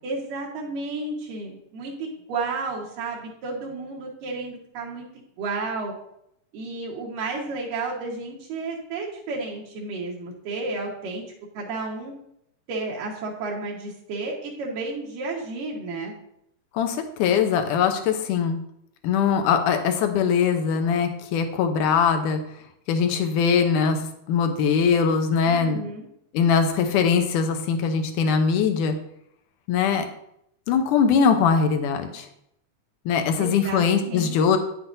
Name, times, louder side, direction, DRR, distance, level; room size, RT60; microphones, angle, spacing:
voice 1, 0.0-5.0 5.4-5.9 6.5-11.2 11.5-12.1 12.7-16.2 25.5-26.1 33.4-34.4, right 3 dB, 85° right, -3 dB, 3.1 m, -32 dB
voice 2, 16.7-18.6 19.0-22.4 22.9-24.0 24.3-25.8 26.3-29.0 29.7-30.1 30.7-32.3 33.1-34.6, left 6 dB, 75° left, 6 dB, 2.3 m, -21 dB
9.9 x 7.8 x 2.7 m, 0.75 s
omnidirectional pair, 3.7 m